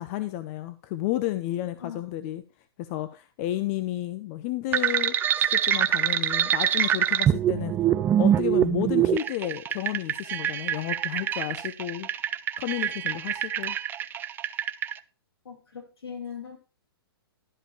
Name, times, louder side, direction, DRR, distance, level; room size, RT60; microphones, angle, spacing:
voice 1, 0.0-2.4 2.8-7.7 8.2-12.1 12.6-13.8, left 14 dB, 35° left, 12 dB, 0.6 m, -32 dB
sound 1, 4.7-14.9, right 10 dB, 15° right, 0.4 m, -25 dB
voice 2, 15.5-16.6, left 7 dB, 75° left, -1 dB, 5.4 m, -39 dB
12.0 x 5.2 x 4.7 m, 0.33 s
hypercardioid pair, 125°, 13 cm